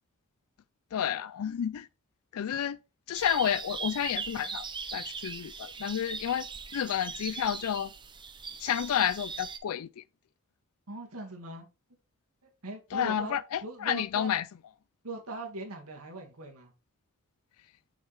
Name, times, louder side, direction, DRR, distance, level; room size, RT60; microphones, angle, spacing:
voice 1, 0.9-1.9 2.3-2.8 3.1-4.6 4.9-6.5 6.7-7.9 8.6-10.0 12.9-14.4, left 9 dB, 75° left, 0.4 m, -30 dB
sound 1, 3.1-9.6, right 5 dB, 20° right, 0.8 m, -40 dB
voice 2, 10.9-11.7 12.6-13.3 13.6-14.3 15.0-16.7, right 2 dB, 80° right, 2.3 m, -40 dB
6.5 x 6.4 x 3.4 m
head